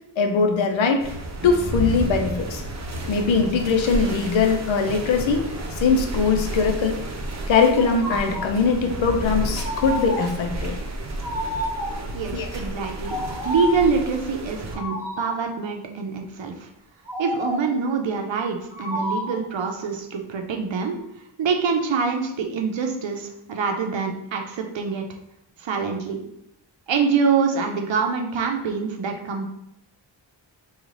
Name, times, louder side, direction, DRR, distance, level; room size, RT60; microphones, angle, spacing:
voice 1, 0.2-1.1 1.4-2.6 3.1-5.5 5.8-7.0 7.5-10.8 12.3-12.5, left 5 dB, 85° left, 5 dB, 0.6 m, -21 dB
sound 1, 1.0-14.8, right 1 dB, 35° right, 0.7 m, -31 dB
sound 2, 7.8-8.6 9.6-10.5 11.2-12.1 13.0-13.9 14.7-15.4 17.1-17.8 18.7-19.5, left 1 dB, 5° right, 0.9 m, -30 dB
voice 2, 12.1-16.7 17.2-21.0 21.4-25.0 25.6-26.2 26.9-29.4, right 5 dB, 75° right, 3 dB, 0.7 m, -25 dB
3.1 x 2.4 x 3.7 m, 0.82 s
cardioid pair, 50°, 45 cm